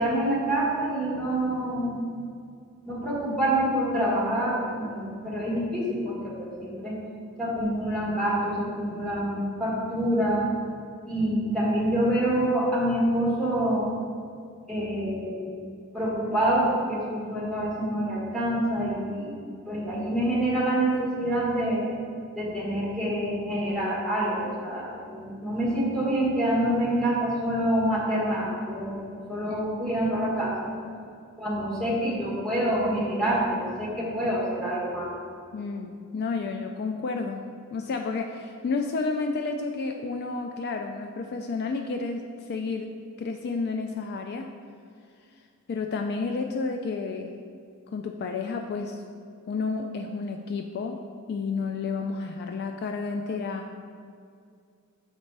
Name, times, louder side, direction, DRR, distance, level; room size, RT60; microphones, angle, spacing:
voice 1, 0.0-2.0 2.8-7.0 7.4-10.5 11.0-13.9 14.7-15.4 15.9-21.9 22.3-29.0 29.3-30.7 31.4-35.1, right 1 dB, 5° left, -7 dB, 1.5 m, -26 dB
voice 2, 35.5-37.4 37.7-42.9 43.2-44.5 45.7-47.4 47.9-49.0 49.5-51.0 51.3-53.8, left 4 dB, 50° left, 4 dB, 0.3 m, -31 dB
6.6 x 4.1 x 4.6 m, 2.3 s
head